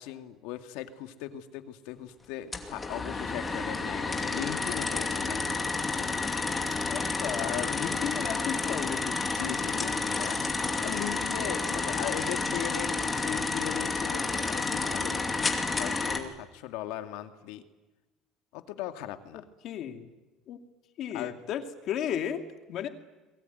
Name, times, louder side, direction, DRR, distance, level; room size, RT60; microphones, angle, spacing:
voice 1, 0.0-5.5 7.4-7.8 9.2-15.2 15.7-17.6 18.5-19.4 21.1-21.3, left 12 dB, 80° left, 7 dB, 2.2 m, -38 dB
sound 1, 2.5-16.2, left 3 dB, 15° left, 2.6 m, -30 dB
voice 2, 6.9-9.3 19.6-20.1 20.5-20.6 21.0-22.9, left 9 dB, 45° left, 6 dB, 2.5 m, -34 dB
28.0 x 22.0 x 9.4 m, 1.1 s
cardioid pair, 165°, 0 cm